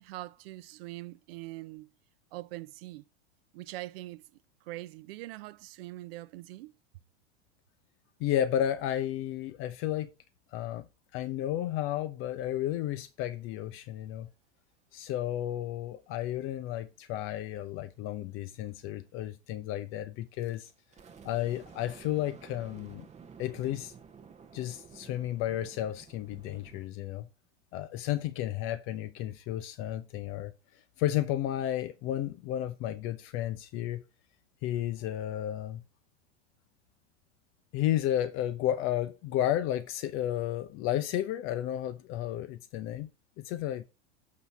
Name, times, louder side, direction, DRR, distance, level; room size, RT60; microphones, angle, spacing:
voice 1, 0.0-1.9 2.3-3.0 3.5-4.2 4.7-6.7, right 18 dB, 60° right, 0.5 m, -42 dB
voice 2, 8.2-10.1 10.5-10.8 11.1-14.3 14.9-20.7 21.2-23.1 23.4-23.9 24.5-27.3 27.7-30.5 31.0-34.0 34.6-35.8 37.7-43.1 43.4-43.8, left 12 dB, 40° left, 0.5 m, -32 dB
sound 1, 20.4-26.9, right 6 dB, 20° right, 0.8 m, -52 dB
7.8 x 2.8 x 5.9 m
hypercardioid pair, 100°, 35 cm